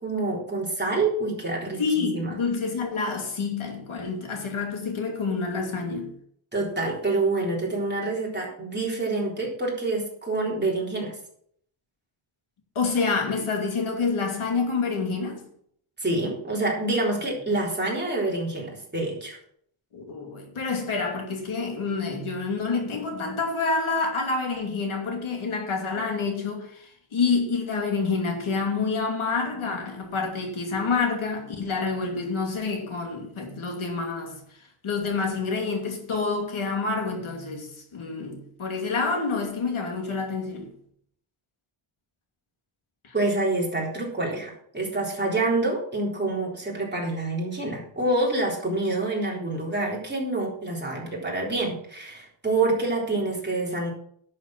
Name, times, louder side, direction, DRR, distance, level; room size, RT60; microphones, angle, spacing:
voice 1, 0.0-2.3 6.5-11.1 16.0-19.4 43.1-53.9, right 2 dB, 20° right, 3.8 m, -27 dB
voice 2, 1.8-6.1 12.7-15.4 19.9-34.4 34.8-40.7 43.0-43.1, left 4 dB, 80° left, 2.7 m, -28 dB
11.0 x 7.1 x 6.1 m
wide cardioid pair, 130°, 48 cm